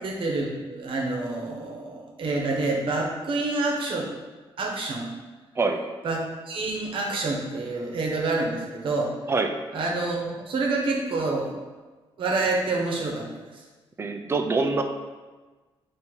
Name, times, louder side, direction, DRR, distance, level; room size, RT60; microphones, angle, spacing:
voice 1, 0.0-4.1 4.6-5.1 6.0-9.3 9.7-11.5 12.2-13.6, right 3 dB, 60° right, -1 dB, 1.0 m, -28 dB
voice 2, 14.0-14.8, right 3 dB, 25° right, 6 dB, 0.4 m, -24 dB
3.9 x 2.8 x 4.5 m, 1.3 s
cardioid pair, 100°, 10 cm